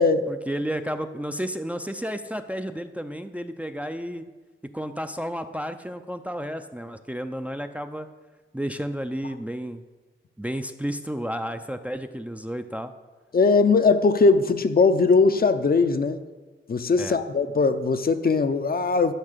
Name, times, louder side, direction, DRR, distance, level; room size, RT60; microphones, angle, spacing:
voice 1, 0.3-4.3 4.7-8.1 8.5-9.8 10.4-12.9 17.0-17.2, equal, 5° right, 7 dB, 0.5 m, -32 dB
voice 2, 13.3-16.2 16.7-19.1, left 4 dB, 45° left, 9 dB, 0.6 m, -20 dB
12.5 x 5.4 x 6.7 m, 1.3 s
cardioid pair, 80°, 21 cm